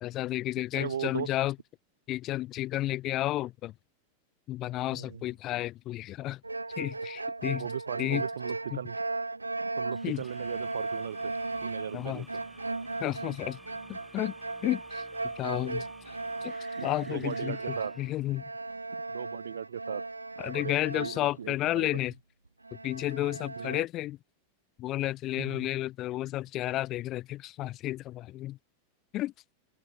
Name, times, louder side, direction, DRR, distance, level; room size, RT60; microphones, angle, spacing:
voice 1, 0.0-1.5 2.1-3.7 4.5-6.4 6.8-7.7 8.0-8.2 8.7-8.8 10.0-10.2 11.9-12.3 13.0-13.6 13.9-14.3 14.6-15.0 15.4-15.9 16.4-16.5 16.8-18.4 20.4-22.1 22.8-24.2 24.8-28.6 29.1-29.3, left 15 dB, 35° left, 0.7 m, -32 dB
voice 2, 0.7-1.3 4.9-5.2 7.6-9.0 9.8-11.4 11.6-12.4 16.8-17.9 18.9-20.1 20.5-22.0 23.6-23.8 25.4-25.7, right 9 dB, 65° right, 1.2 m, -38 dB
sound 1, 6.4-21.8 22.1-22.2 22.6-23.9, right 2 dB, 80° right, 1.4 m, -37 dB
sound 2, 9.9-18.4, right 1 dB, 5° right, 3.8 m, -55 dB
figure-of-eight pair, 90°, 0 cm